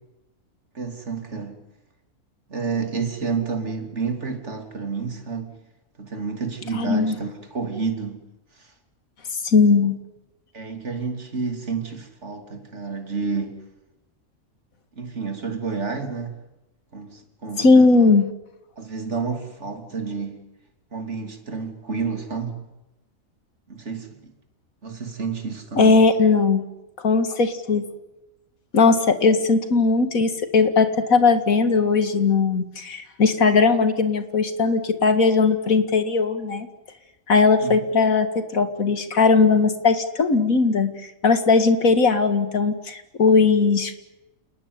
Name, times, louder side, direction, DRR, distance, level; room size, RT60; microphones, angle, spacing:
voice 1, 0.7-1.6 2.5-5.5 6.0-8.2 10.5-13.6 14.9-16.4 16.9-17.9 18.8-20.4 20.9-22.6 23.7-24.3 24.8-26.0 37.6-37.8, right 5 dB, 55° right, 5 dB, 3.4 m, -30 dB
voice 2, 6.7-7.1 9.4-10.0 17.6-18.3 25.8-26.6 27.0-27.8 28.7-36.7 37.3-40.9 41.2-43.9, left 4 dB, 85° left, 9 dB, 2.4 m, -18 dB
29.5 x 19.0 x 9.7 m, 0.97 s
omnidirectional pair, 1.4 m